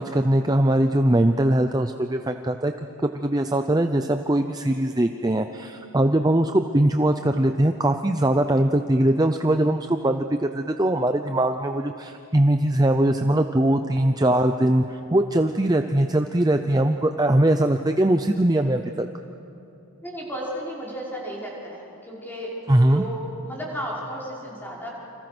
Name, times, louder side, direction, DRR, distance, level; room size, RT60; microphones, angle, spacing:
voice 1, 0.0-2.7 3.0-19.1 22.7-23.0, right 1 dB, 15° right, 6 dB, 0.6 m, -21 dB
voice 2, 13.8-14.1 20.0-24.9, equal, 10° left, -5 dB, 5.7 m, -34 dB
29.0 x 26.5 x 6.2 m, 3.0 s
head